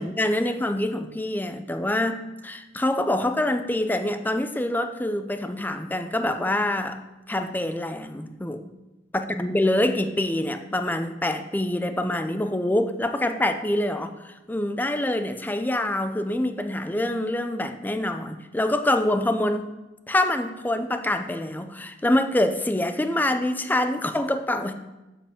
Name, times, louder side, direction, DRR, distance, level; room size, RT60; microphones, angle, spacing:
voice 1, 0.0-7.0 7.3-8.6 9.1-19.7 20.1-24.7, left 1 dB, 10° left, 8 dB, 0.5 m, -25 dB
7.3 x 7.0 x 5.1 m, 1.1 s
head